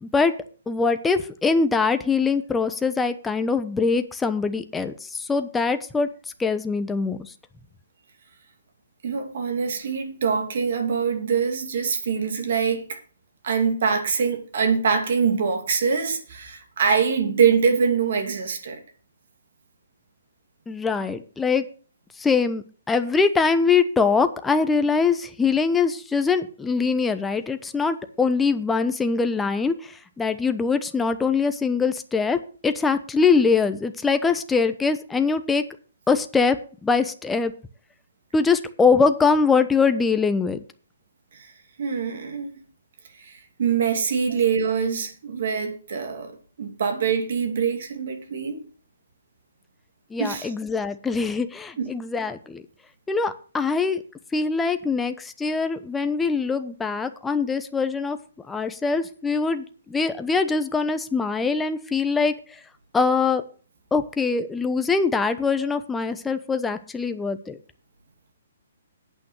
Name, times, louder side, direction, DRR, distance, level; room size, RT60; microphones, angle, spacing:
voice 1, 0.0-0.3 0.7-6.1 6.4-7.3 20.7-21.6 22.2-35.6 36.1-36.6 36.8-37.5 38.3-40.6 50.1-52.6 53.1-54.0 54.3-58.2 58.5-62.3 62.9-63.4 63.9-67.6, left 4 dB, 10° left, 0.9 m, -23 dB
voice 2, 9.0-13.0 13.4-18.8 41.8-42.5 43.2-46.3 46.6-48.6 50.2-50.5 51.8-52.0, right 6 dB, 60° right, 2.5 m, -24 dB
8.8 x 5.7 x 7.7 m
figure-of-eight pair, 130°, 0 cm